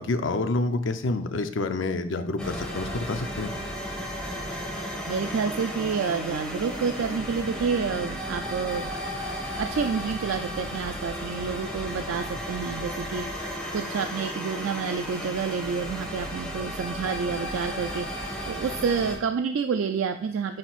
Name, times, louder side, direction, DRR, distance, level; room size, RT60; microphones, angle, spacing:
voice 1, 0.0-3.5, left 2 dB, 70° left, 8 dB, 0.6 m, -28 dB
sound 1, 2.4-19.2, equal, 5° left, 1.5 m, -34 dB
voice 2, 5.1-8.9 9.6-20.6, right 6 dB, 90° right, 7 dB, 0.4 m, -29 dB
9.4 x 4.4 x 2.4 m, 0.76 s
head